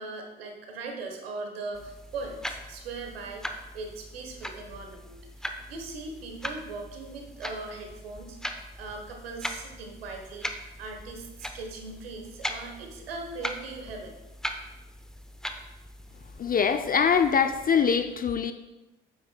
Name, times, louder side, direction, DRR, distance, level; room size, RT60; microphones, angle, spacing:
voice 1, 0.0-14.1, right 3 dB, 90° right, 3 dB, 1.2 m, -40 dB
sound 1, 1.7-17.7, equal, ahead, 0.8 m, -40 dB
voice 2, 16.4-18.5, left 6 dB, 30° left, 9 dB, 0.5 m, -23 dB
8.6 x 8.6 x 2.3 m, 1.0 s
hypercardioid pair, 60°, 29 cm